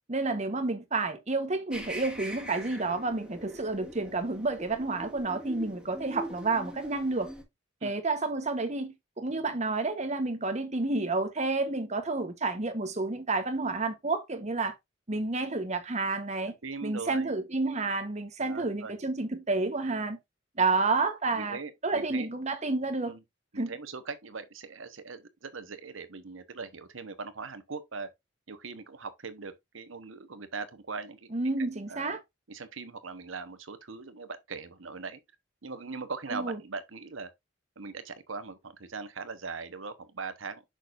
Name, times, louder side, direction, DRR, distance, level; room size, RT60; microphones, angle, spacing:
voice 1, 0.1-7.3 7.8-14.7 15.1-16.5 16.8-20.2 20.6-21.6 21.8-23.1 23.6-23.7 31.3-32.2 36.3-36.6, right 3 dB, 35° right, 1.0 m, -30 dB
sound 1, 1.7-7.4, equal, 5° right, 1.8 m, -43 dB
voice 2, 16.5-17.3 18.4-18.9 20.6-20.7 21.3-22.3 23.0-23.2 23.5-28.1 28.5-31.3 31.6-32.1 32.5-35.2 35.6-37.3 37.8-40.6, right 4 dB, 85° right, 1.1 m, -40 dB
6.5 x 6.3 x 2.5 m
head